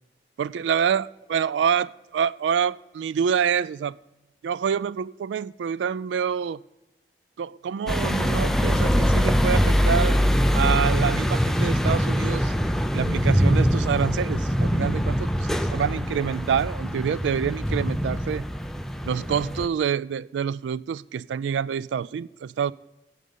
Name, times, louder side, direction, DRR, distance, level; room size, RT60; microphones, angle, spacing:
voice 1, 0.4-3.9 4.4-6.6 7.4-10.2 10.5-12.5 12.9-18.4 19.0-22.7, right 7 dB, 80° right, 0.3 m, -26 dB
sound 1, 7.9-19.7, equal, ahead, 0.4 m, -23 dB
9.9 x 5.3 x 6.9 m
head